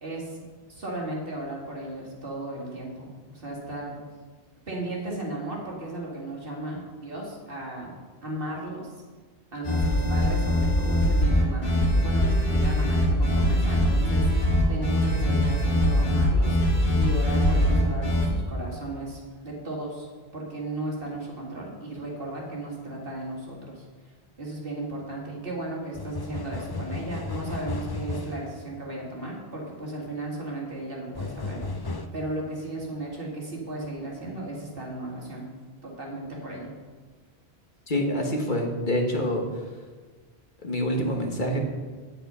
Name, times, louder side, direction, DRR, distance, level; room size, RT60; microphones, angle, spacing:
voice 1, 0.0-0.4 0.7-4.0 4.7-7.9 8.2-8.9 9.5-20.1 20.3-35.5 35.8-36.7, right 2 dB, 60° right, -2 dB, 2.3 m, -35 dB
sound 1, 9.6-18.3, left 1 dB, 75° left, 2.5 m, -22 dB
sound 2, 25.9-28.5 31.2-32.1, left 3 dB, 30° left, 0.4 m, -34 dB
voice 2, 37.9-39.4 40.6-41.6, equal, 50° left, 2 dB, 1.4 m, -26 dB
9.0 x 8.2 x 5.5 m, 1.4 s
omnidirectional pair, 1.1 m